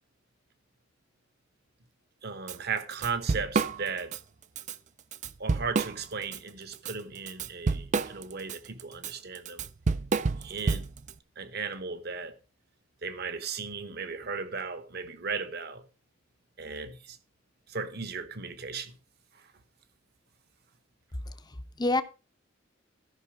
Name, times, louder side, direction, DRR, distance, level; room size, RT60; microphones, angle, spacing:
voice 1, 2.2-4.1 5.4-9.7 10.4-10.9 11.4-12.4 13.0-15.8 16.6-17.2 17.7-19.0 19.3-19.5, right 5 dB, 50° right, 1.1 m, -36 dB
Drum kit / Drum, 2.5-2.6 2.9-4.2 4.6-4.7 5.1-6.4 6.7-11.1, right 4 dB, 35° right, 0.4 m, -29 dB
voice 2, 21.2-22.0, left 2 dB, 20° left, 0.7 m, -29 dB
13.5 x 5.5 x 5.0 m
head